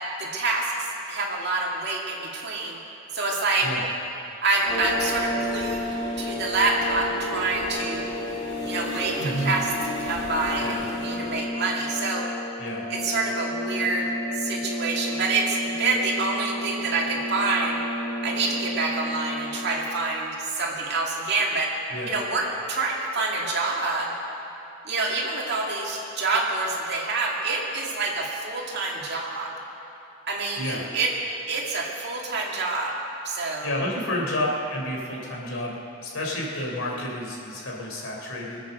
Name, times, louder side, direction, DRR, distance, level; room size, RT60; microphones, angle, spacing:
voice 1, 0.2-0.7 1.1-2.8 3.1-3.7 4.4-5.9 6.2-8.1 8.6-9.7 10.0-12.3 12.9-14.1 14.4-17.8 18.2-21.7 22.0-24.1 24.9-29.5 30.3-31.1 31.5-33.0 33.2-33.7, right 3 dB, 55° right, -2 dB, 2.4 m, -27 dB
sound 1, 4.6-19.7, left 1 dB, 30° right, 3.5 m, -32 dB
sound 2, 4.7-11.4, left 2 dB, 55° left, 3.2 m, -38 dB
voice 2, 9.2-9.5 10.6-10.8 12.6-12.8 21.9-22.1 30.6-30.8 33.6-35.8 36.0-38.6, left 1 dB, 80° left, -2 dB, 3.4 m, -30 dB
22.5 x 8.7 x 6.8 m, 3.0 s
head